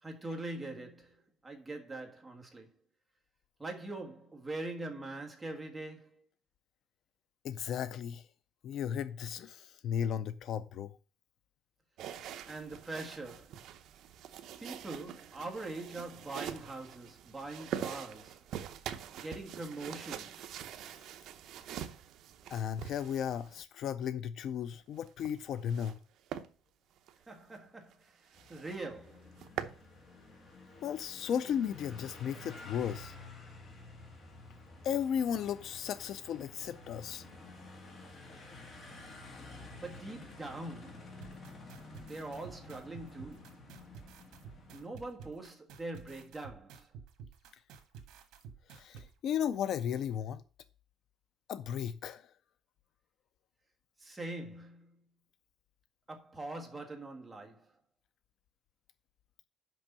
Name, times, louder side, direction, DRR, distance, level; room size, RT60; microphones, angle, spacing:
voice 1, 0.0-2.7 3.6-6.2 12.5-13.6 14.6-18.4 19.1-20.5 27.3-29.3 39.8-41.1 42.1-43.6 44.7-46.9 54.0-54.9 56.1-57.7, right 2 dB, 10° right, 1.5 m, -43 dB
voice 2, 7.4-8.3 8.6-10.9 22.5-26.0 30.8-33.1 34.8-37.2 48.7-50.4 51.5-52.3, left 8 dB, 50° left, 0.4 m, -35 dB
sound 1, 12.0-23.6 24.9-26.0 26.3-26.5 27.0-27.1 27.5-27.6 27.9-28.0 28.3-28.8 29.1-29.8, right 9 dB, 55° right, 0.7 m, -44 dB
sound 2, 28.3-44.8, left 2 dB, 30° left, 1.8 m, -51 dB
sound 3, 41.2-49.1, right 6 dB, 75° right, 1.5 m, -51 dB
6.1 x 5.5 x 6.7 m
cardioid pair, 175°, 0 cm